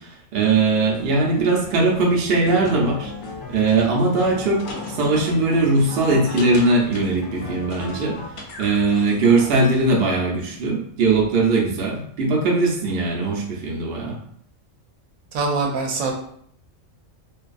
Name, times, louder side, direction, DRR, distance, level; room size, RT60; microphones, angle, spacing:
voice 1, 0.0-3.1 3.5-8.2 8.6-14.2, right 3 dB, 60° right, -1 dB, 0.7 m, -20 dB
sound 1, 0.9-9.9, left 3 dB, 70° left, 0.5 m, -36 dB
voice 2, 15.3-16.1, right 3 dB, 85° right, 1 dB, 1.0 m, -23 dB
2.5 x 2.3 x 2.4 m, 0.65 s
omnidirectional pair, 1.4 m